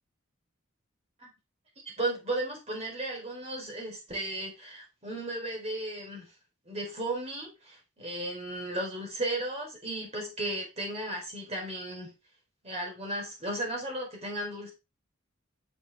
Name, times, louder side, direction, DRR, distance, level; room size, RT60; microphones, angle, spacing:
voice 1, 2.0-6.3 6.7-12.1 12.6-14.7, right 1 dB, 30° right, 0 dB, 4.2 m, -35 dB
9.1 x 7.1 x 3.5 m, 0.26 s
head